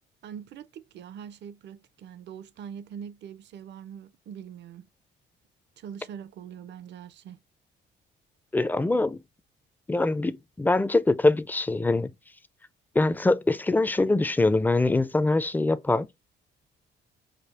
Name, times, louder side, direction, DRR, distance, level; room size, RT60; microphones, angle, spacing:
voice 1, 0.2-4.9 5.8-7.4, right 8 dB, 60° right, 0.5 m, -43 dB
voice 2, 8.5-9.2 9.9-12.1 13.0-16.1, left 2 dB, 10° left, 0.4 m, -23 dB
5.1 x 2.3 x 3.3 m
cardioid pair, 90°, 20 cm